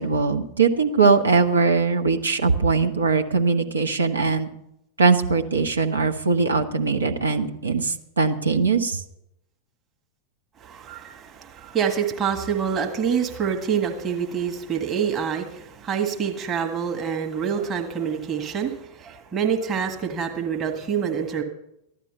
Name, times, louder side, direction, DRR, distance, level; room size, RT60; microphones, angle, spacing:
voice 1, 0.0-4.5 5.0-9.0, right 4 dB, 75° right, 4 dB, 1.3 m, -21 dB
voice 2, 10.6-21.4, right 7 dB, 25° right, 3 dB, 1.7 m, -26 dB
14.5 x 11.5 x 5.6 m, 0.82 s
figure-of-eight pair, 90°, 0 cm